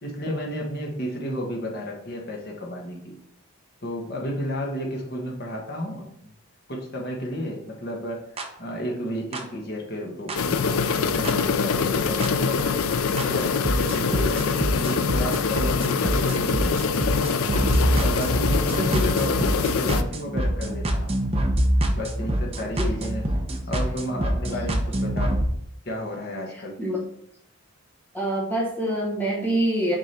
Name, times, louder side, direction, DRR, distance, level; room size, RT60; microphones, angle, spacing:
voice 1, 0.0-3.2 3.8-6.3 6.7-8.2 8.6-12.8 13.2-16.8 18.0-21.1 21.9-23.2 23.7-25.4 25.8-26.8, equal, 45° left, -1 dB, 1.3 m, -32 dB
sound 1, 8.4-8.5 9.3-9.4 10.3-10.4 11.3-11.4 12.2-12.3 13.2-13.3 13.7-25.5, right 1 dB, 25° right, 0.8 m, -25 dB
sound 2, 10.3-20.0, left 5 dB, 75° left, 0.4 m, -24 dB
voice 2, 18.8-19.2 22.8-22.9 26.8-27.1 28.1-30.0, right 1 dB, 10° left, -4 dB, 1.2 m, -25 dB
6.5 x 3.7 x 4.3 m, 0.70 s
head